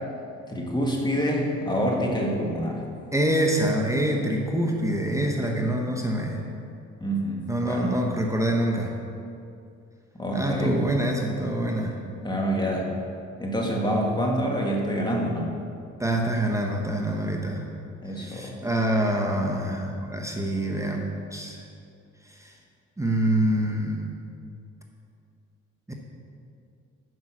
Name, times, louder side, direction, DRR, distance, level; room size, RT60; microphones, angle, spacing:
voice 1, 0.5-2.8 7.0-8.0 10.1-10.8 12.0-12.9 13.4-15.5 18.0-18.6, equal, 15° left, -1 dB, 1.9 m, -27 dB
voice 2, 3.1-6.4 7.5-9.0 10.3-12.0 16.0-17.7 18.1-21.6 22.3-22.5 23.0-24.2 25.9-26.0, right 1 dB, 10° right, 0 dB, 1.0 m, -26 dB
9.3 x 5.6 x 6.1 m, 2.4 s
cardioid pair, 90°, 30 cm